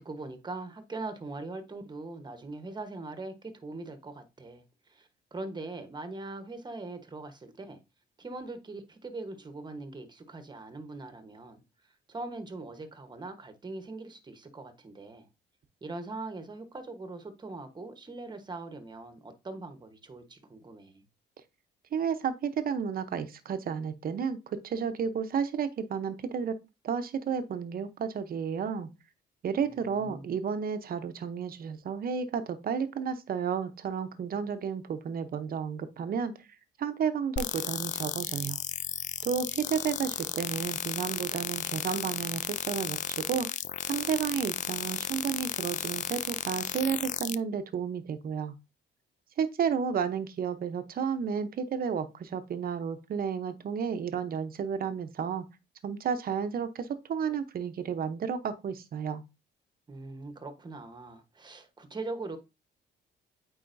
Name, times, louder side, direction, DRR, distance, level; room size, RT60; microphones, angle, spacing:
voice 1, 0.0-7.8 8.2-15.3 15.8-21.0 29.6-30.3 59.9-62.4, right 3 dB, 25° right, 1.2 m, -41 dB
voice 2, 21.9-26.5 26.8-28.9 29.4-36.3 36.8-38.6 39.2-43.5 43.8-48.5 49.4-55.4 55.8-59.2, right 7 dB, 50° right, 0.9 m, -32 dB
sound 1, 37.4-47.3, left 9 dB, 40° left, 0.4 m, -34 dB
8.6 x 4.2 x 2.7 m
cardioid pair, 110°, 19 cm